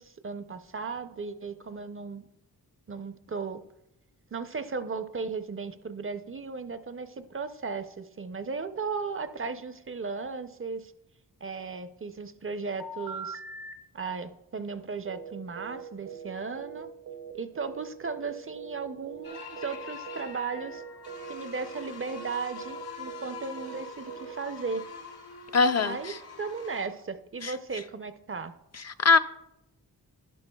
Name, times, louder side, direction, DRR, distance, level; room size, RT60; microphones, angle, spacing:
voice 1, 0.0-2.3 2.9-3.6 4.3-10.9 11.4-13.4 13.9-16.9 17.3-20.8 21.3-24.9 25.8-28.5, right 4 dB, 35° right, 10 dB, 0.5 m, -36 dB
sound 1, 12.8-13.7 15.1-18.8 19.1-19.8 20.1-20.3 20.6-20.8 21.1-24.3, right 5 dB, 65° right, 0.9 m, -41 dB
sound 2, 19.2-26.9, left 5 dB, 85° left, 1.6 m, -44 dB
voice 2, 25.5-26.0 27.4-27.5 28.8-29.2, left 4 dB, 45° left, 10 dB, 0.4 m, -21 dB
11.5 x 11.0 x 2.2 m, 0.86 s
wide cardioid pair, 95°, 38 cm